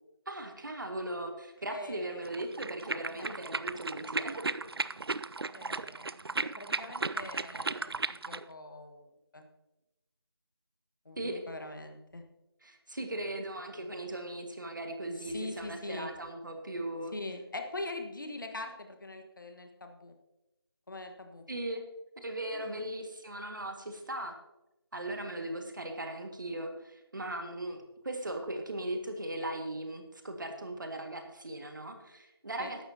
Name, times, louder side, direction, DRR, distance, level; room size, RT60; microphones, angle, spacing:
voice 1, 0.3-4.6 11.2-11.4 12.6-17.1 21.5-21.8 22.2-24.4 24.9-32.9, right 1 dB, 50° right, 5 dB, 1.8 m, -38 dB
voice 2, 1.7-2.3 2.8-3.4 5.5-9.4 11.0-12.2 15.1-16.1 17.1-20.1 20.9-21.4 22.5-22.8 32.6-32.8, left 2 dB, 50° left, 5 dB, 1.5 m, -43 dB
sound 1, 2.3-8.4, right 3 dB, 70° right, 0.5 m, -35 dB
14.5 x 11.5 x 2.8 m, 0.93 s
figure-of-eight pair, 170°, 13 cm